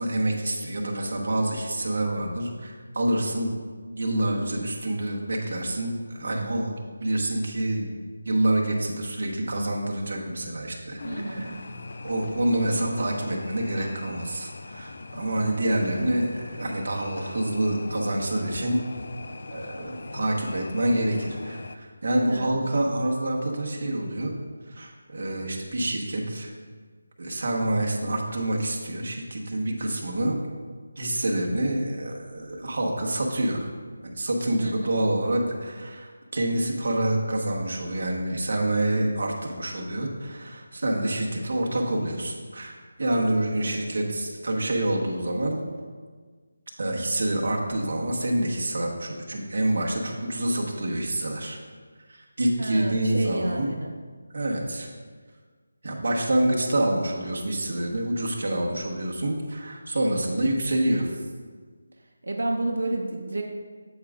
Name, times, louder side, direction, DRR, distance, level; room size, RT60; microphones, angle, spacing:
voice 1, 0.0-3.6 3.9-6.7 7.0-7.9 8.2-11.6 12.0-18.8 19.5-24.3 24.7-26.5 27.2-30.4 31.0-33.7 34.0-45.6 46.8-51.6 52.1-53.7 54.3-54.9 55.8-61.1, right 1 dB, 50° right, -1 dB, 1.1 m, -27 dB
sound 1, 11.0-21.8, left 3 dB, 45° left, 0.3 m, -41 dB
voice 2, 11.0-11.6 22.3-22.6 34.6-35.0 43.6-44.0 52.6-53.9 62.2-63.4, right 2 dB, 85° right, 2 dB, 0.7 m, -31 dB
8.5 x 7.5 x 2.4 m, 1.6 s
figure-of-eight pair, 175°, 0 cm